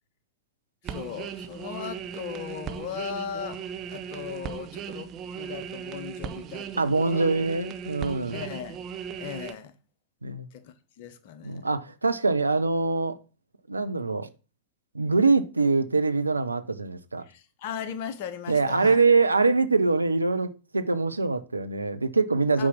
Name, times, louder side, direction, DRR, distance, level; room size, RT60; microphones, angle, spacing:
voice 1, 0.8-3.6 3.9-7.3 8.3-8.8 9.2-9.8 10.5-11.7 17.2-19.0 22.6-22.7, left 8 dB, 50° left, 1.1 m, -38 dB
sound 1, 0.8-9.5, right 7 dB, 35° right, 1.0 m, -37 dB
voice 2, 6.8-8.4 10.2-10.5 11.4-13.2 13.7-14.3 14.9-17.2 18.5-22.7, right 3 dB, 80° right, 0.8 m, -24 dB
8.8 x 4.8 x 5.9 m
figure-of-eight pair, 90°, 0 cm